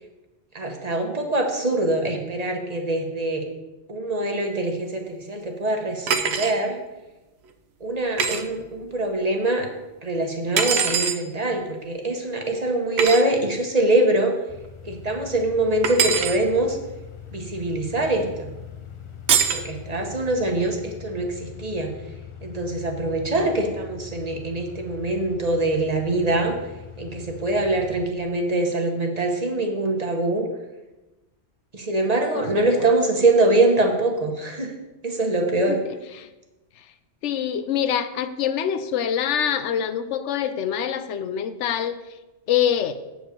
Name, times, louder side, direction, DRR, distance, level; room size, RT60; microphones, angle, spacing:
voice 1, 0.5-3.4 3.9-6.8 7.8-9.7 10.0-14.3 14.8-16.8 17.3-18.5 19.5-21.9 22.4-26.5 27.0-30.5 31.7-34.7 35.0-35.8, right 2 dB, 35° right, 3 dB, 1.0 m, -23 dB
sound 1, 6.1-6.6 8.2-8.4 10.6-11.2 13.0-13.2 15.8-16.4 19.3-19.6, right 7 dB, 70° right, 0.9 m, -22 dB
sound 2, 14.5-28.1, left 8 dB, 40° left, 0.5 m, -41 dB
voice 2, 32.3-32.9 35.7-35.8 36.1-36.3 37.2-42.0 42.5-42.9, left 9 dB, 85° left, 11 dB, 0.9 m, -25 dB
7.8 x 4.9 x 6.5 m, 1.1 s
omnidirectional pair, 1.2 m